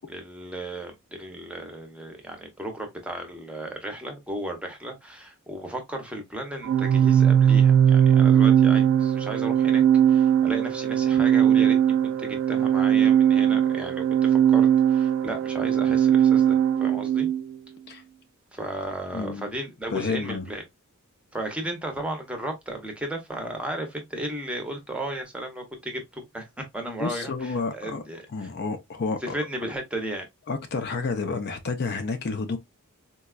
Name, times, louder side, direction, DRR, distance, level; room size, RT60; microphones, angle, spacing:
voice 1, 0.0-11.8 12.0-17.3 18.5-20.6 21.3-28.5 29.2-30.3, right 1 dB, 5° right, 0.7 m, -35 dB
Organ, 6.6-17.4, right 9 dB, 65° right, 0.3 m, -19 dB
voice 2, 19.1-19.5 19.9-20.5 27.0-28.0 28.3-29.4 30.5-32.6, left 4 dB, 50° left, 0.5 m, -30 dB
4.0 x 2.3 x 2.2 m
head